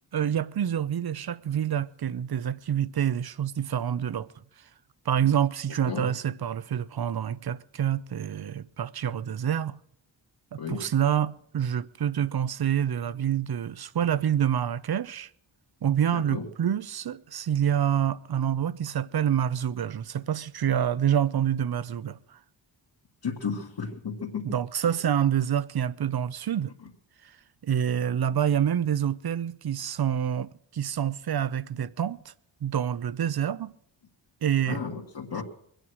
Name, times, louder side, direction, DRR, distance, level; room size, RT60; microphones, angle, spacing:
voice 1, 0.1-4.3 5.1-9.8 10.5-15.3 15.8-22.4 24.4-26.7 27.6-32.3 32.6-33.7 34.4-34.8 35.3-35.4, right 9 dB, 55° right, 0.7 m, -27 dB
voice 2, 16.1-16.4 23.2-24.4 34.7-35.4, left 6 dB, 60° left, 2.1 m, -33 dB
22.5 x 9.1 x 6.3 m
wide cardioid pair, 130°, 44 cm